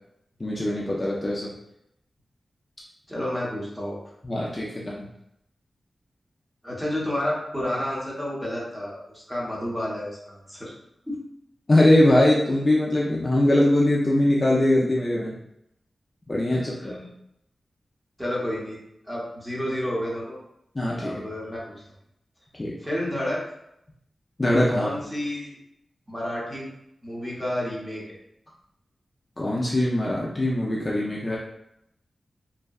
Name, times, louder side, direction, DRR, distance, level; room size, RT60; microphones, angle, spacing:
voice 1, 0.4-1.5 4.2-5.1 11.7-15.3 16.3-17.0 20.7-21.1 22.6-22.7 24.4-24.9 29.4-31.4, left 1 dB, 30° left, -5 dB, 0.4 m, -22 dB
voice 2, 3.1-4.0 6.6-10.7 11.0-11.2 16.5-17.1 18.2-18.8 19.0-20.4 21.0-21.7 22.8-23.4 24.7-25.6 26.1-26.7 27.0-28.0, left 1 dB, 5° right, -5 dB, 0.8 m, -30 dB
2.6 x 2.1 x 2.3 m, 0.80 s
wide cardioid pair, 100°, 0 cm